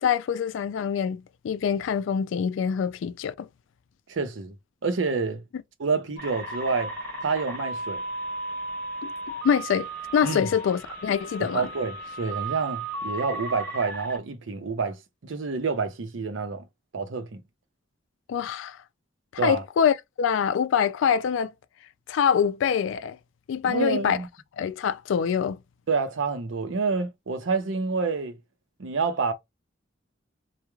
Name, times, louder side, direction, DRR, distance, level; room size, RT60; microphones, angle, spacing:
voice 1, 0.0-3.5 9.0-9.1 9.4-11.7 18.3-18.8 19.4-21.5 22.1-23.2 23.5-24.2 24.6-25.6, left 7 dB, 80° left, 0.3 m, -25 dB
voice 2, 4.1-4.6 4.8-5.4 5.8-7.0 7.2-8.0 10.2-10.5 11.4-15.0 15.2-16.7 16.9-17.4 19.4-19.6 23.6-24.3 25.9-28.4 28.8-29.3, right 4 dB, 85° right, 0.6 m, -28 dB
sound 1, 6.2-14.2, right 2 dB, 10° left, 1.3 m, -35 dB
3.0 x 2.1 x 2.3 m
head